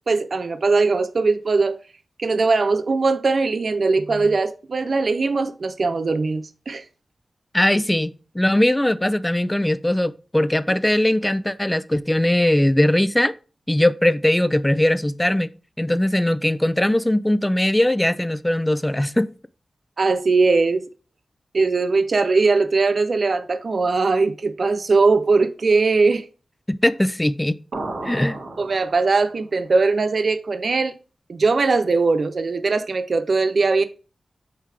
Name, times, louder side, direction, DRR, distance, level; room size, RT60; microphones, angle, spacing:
voice 1, 0.1-1.8 2.2-6.8 20.0-20.8 21.5-26.2 28.6-30.9 31.3-33.8, right 4 dB, 60° right, 0.5 m, -20 dB
voice 2, 7.5-13.3 13.7-15.5 15.8-19.3 26.7-27.6 28.0-28.4, left 1 dB, 10° left, 0.3 m, -20 dB
sound 1, 27.7-29.4, right 2 dB, 85° right, 1.4 m, -33 dB
5.5 x 3.9 x 4.8 m
wide cardioid pair, 120°, 0 cm